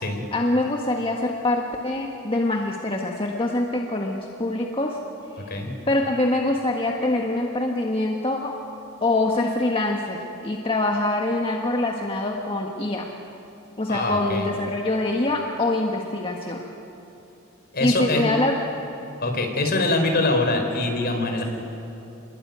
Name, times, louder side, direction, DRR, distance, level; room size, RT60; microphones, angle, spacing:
voice 1, 0.3-5.0 5.3-5.5 5.9-8.6 9.0-13.1 13.8-16.6 17.8-18.5, left 2 dB, 25° left, 0 dB, 1.6 m, -24 dB
voice 2, 13.9-14.5 17.7-18.3 19.2-21.4, left 2 dB, 50° left, 3 dB, 4.5 m, -23 dB
28.5 x 22.0 x 9.4 m, 3.0 s
head